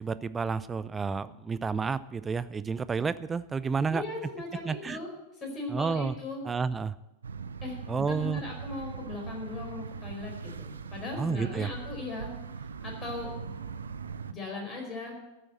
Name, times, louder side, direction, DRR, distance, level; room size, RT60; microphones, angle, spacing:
voice 1, 0.0-4.0 4.6-5.0 5.7-6.1 6.5-6.9 7.9-8.4 11.2-11.7, right 5 dB, 15° right, 15 dB, 0.5 m, -30 dB
voice 2, 3.9-6.4 7.6-12.3 12.8-13.3 14.3-15.1, left 2 dB, 25° left, 0 dB, 4.6 m, -38 dB
sound 1, 7.2-14.3, right 6 dB, 70° right, 0.5 m, -40 dB
13.5 x 6.3 x 7.8 m, 1.0 s
figure-of-eight pair, 90°, 0 cm